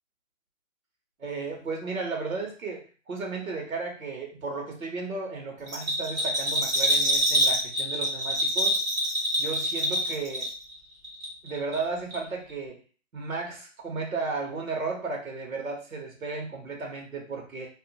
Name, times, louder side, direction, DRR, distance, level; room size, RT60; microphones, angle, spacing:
voice 1, 1.2-8.7 9.4-10.5 11.4-12.8 13.1-17.7, right 4 dB, 90° right, 1 dB, 1.1 m, -34 dB
Bell, 5.7-10.8 11.0-11.8 12.1-12.2, equal, 15° right, 0.5 m, -26 dB
2.6 x 2.2 x 2.7 m, 0.40 s
hypercardioid pair, 135°, 40 cm